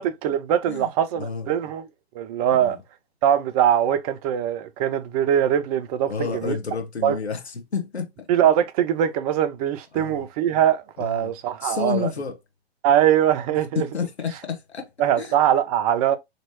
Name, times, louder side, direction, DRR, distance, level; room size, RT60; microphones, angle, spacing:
voice 1, 0.0-1.9 2.1-2.8 3.2-6.6 7.0-7.2 8.3-12.1 12.8-13.9 15.0-16.2, right 10 dB, 35° right, 0.6 m, -22 dB
voice 2, 0.7-1.5 2.5-2.8 6.1-8.3 9.9-10.3 11.0-11.3 11.6-12.4 13.7-14.9 15.2-15.3, left 5 dB, 85° left, 1.3 m, -30 dB
3.0 x 3.0 x 2.9 m
figure-of-eight pair, 105°, 32 cm